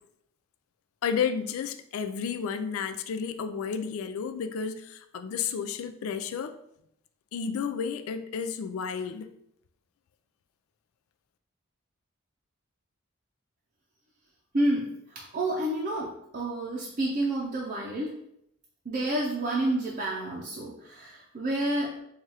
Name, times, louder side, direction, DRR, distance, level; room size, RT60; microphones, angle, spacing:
voice 1, 1.0-6.6 7.3-9.3, left 6 dB, 80° left, 9 dB, 0.3 m, -32 dB
voice 2, 14.5-18.1 18.9-22.0, right 1 dB, 40° right, -4 dB, 0.6 m, -29 dB
4.6 x 2.4 x 2.8 m, 0.75 s
head